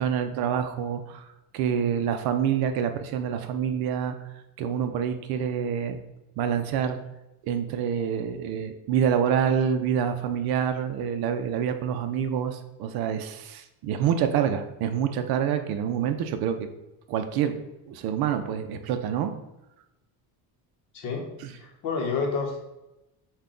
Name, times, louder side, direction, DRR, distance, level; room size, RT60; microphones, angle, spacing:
voice 1, 0.0-4.2 4.6-6.0 6.4-7.0 7.4-16.7 17.1-17.5 17.9-19.3 21.4-21.5, right 8 dB, 65° right, 8 dB, 0.5 m, -27 dB
voice 2, 20.9-22.6, left 4 dB, 50° left, 1 dB, 1.0 m, -30 dB
5.6 x 2.3 x 3.7 m, 0.93 s
cardioid pair, 180°, 40 cm